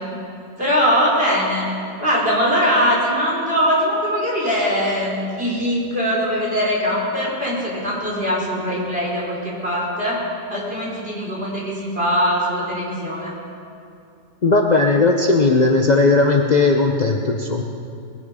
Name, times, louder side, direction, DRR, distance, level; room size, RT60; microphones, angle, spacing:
voice 1, 0.6-1.7 2.0-9.4 9.6-10.2 10.5-13.3, equal, 30° right, -5 dB, 4.1 m, -21 dB
voice 2, 14.4-17.6, left 3 dB, 65° left, 1 dB, 0.4 m, -16 dB
20.5 x 11.5 x 5.0 m, 2.5 s
omnidirectional pair, 2.0 m